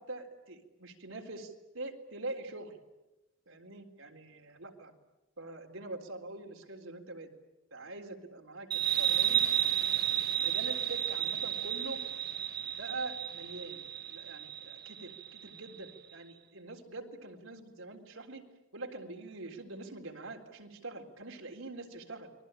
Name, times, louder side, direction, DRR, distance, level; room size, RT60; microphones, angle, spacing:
voice 1, 0.0-2.8 3.5-4.9 5.4-7.3 7.7-9.4 10.4-12.0 12.8-18.4 18.7-22.3, right 2 dB, 85° right, 2 dB, 3.8 m, -44 dB
sound 1, 8.7-15.9, right 10 dB, 50° right, 1.2 m, -32 dB
29.5 x 22.0 x 9.0 m, 0.97 s
head